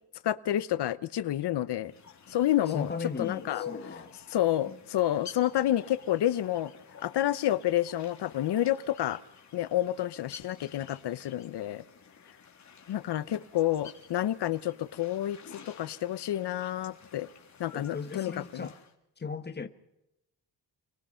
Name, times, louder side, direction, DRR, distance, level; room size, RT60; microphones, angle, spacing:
voice 1, 0.2-1.9 2.3-2.9 3.2-3.6 4.3-6.7 7.0-9.2 9.5-11.8 12.9-15.4 15.7-17.3 17.6-18.7, left 13 dB, 85° left, 0.9 m, -29 dB
sound 1, 1.9-18.9, left 7 dB, 45° left, 3.5 m, -50 dB
voice 2, 2.7-4.1 4.6-4.8 17.7-18.8 19.2-19.7, left 5 dB, 25° left, 1.6 m, -37 dB
30.0 x 20.5 x 5.7 m
wide cardioid pair, 150°, 39 cm